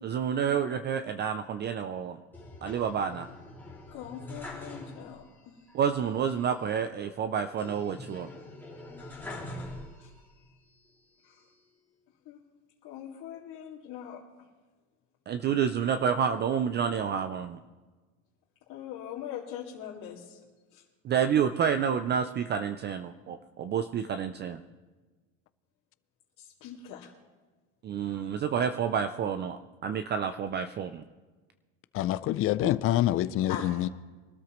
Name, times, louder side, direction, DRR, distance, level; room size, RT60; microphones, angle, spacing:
voice 1, 0.0-2.2 2.6-3.3 5.7-8.3 15.3-17.6 21.0-24.6 27.8-31.0, right 7 dB, 25° right, 10 dB, 0.4 m, -29 dB
sound 1, 2.3-5.4 5.7-5.8 7.6-10.3 10.8-11.7, left 1 dB, 5° left, 2.6 m, -44 dB
voice 2, 3.9-5.6 10.0-10.1 11.2-11.4 12.3-12.4 12.8-14.2 18.7-20.4 20.7-20.8 26.4-27.1 33.5-33.8, left 9 dB, 50° left, -6 dB, 2.2 m, -42 dB
voice 3, 31.9-33.9, left 13 dB, 35° left, 16 dB, 0.4 m, -26 dB
23.5 x 13.0 x 3.1 m, 1.3 s
cardioid pair, 145°, 40 cm